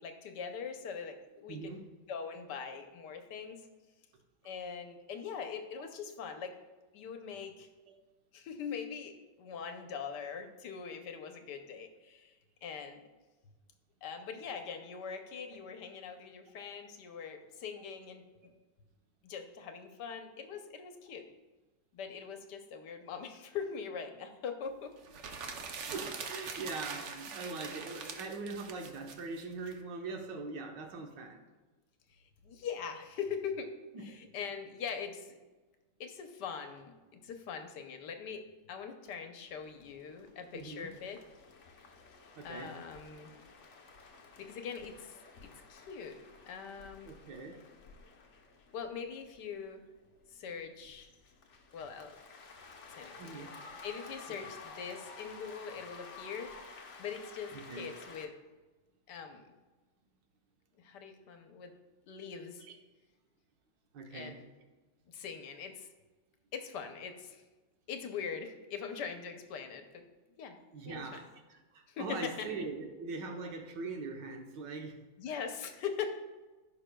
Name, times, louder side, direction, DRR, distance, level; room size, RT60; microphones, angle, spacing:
voice 1, 0.0-1.7 2.1-3.6 4.4-6.5 6.9-7.7 8.3-13.0 14.0-18.5 19.2-21.3 21.9-24.9 32.1-33.7 34.0-35.4 36.0-41.2 42.4-43.3 44.4-46.2 46.5-47.1 48.7-49.8 50.3-51.1 51.7-52.1 52.9-53.4 53.8-56.5 57.0-58.3 59.1-59.5 60.8-61.7 62.1-62.6 64.1-64.5 65.1-65.9 66.5-67.4 67.9-70.0 70.4-70.5 70.8-71.2 71.9-72.5 75.2-76.2, left 6 dB, 70° left, 6 dB, 1.3 m, -42 dB
voice 2, 1.5-1.8 5.7-5.9 25.9-31.4 33.9-34.1 40.5-40.9 42.4-42.8 47.0-47.6 53.2-53.6 57.5-57.9 62.6-62.7 63.9-64.4 70.7-75.0, right 3 dB, 75° right, 3 dB, 1.6 m, -42 dB
sound 1, 25.0-29.7, right 5 dB, 60° right, 0.8 m, -43 dB
sound 2, 39.5-58.3, left 4 dB, 50° left, 1.0 m, -53 dB
15.0 x 5.7 x 2.2 m, 1.2 s
omnidirectional pair, 2.0 m